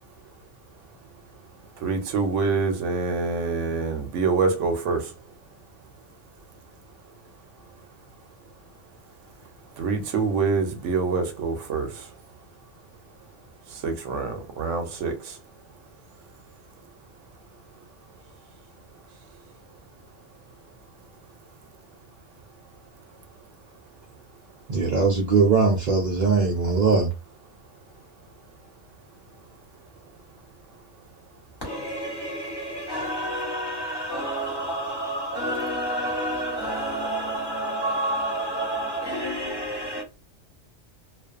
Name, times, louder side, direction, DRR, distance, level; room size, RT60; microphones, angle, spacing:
voice 1, 1.8-5.1 9.8-11.9 13.8-15.1, right 4 dB, 80° right, 1.0 m, -25 dB
voice 2, 24.7-27.1, right 4 dB, 55° right, 0.5 m, -20 dB
voice 3, 31.6-40.0, right 1 dB, 20° left, 1.2 m, -29 dB
2.5 x 2.2 x 2.3 m
omnidirectional pair, 1.2 m